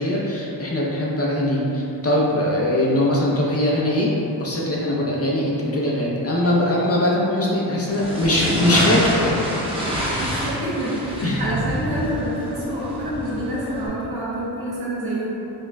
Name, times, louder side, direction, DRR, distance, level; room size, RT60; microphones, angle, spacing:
voice 1, 0.0-4.1 4.4-9.4 11.2-11.4, left 1 dB, 30° left, -5 dB, 0.6 m, -21 dB
sound 1, 7.9-13.9, equal, 10° right, 0.9 m, -26 dB
voice 2, 10.2-15.4, equal, 55° right, -8 dB, 1.2 m, -27 dB
5.3 x 2.4 x 2.2 m, 2.9 s
cardioid pair, 65°, 46 cm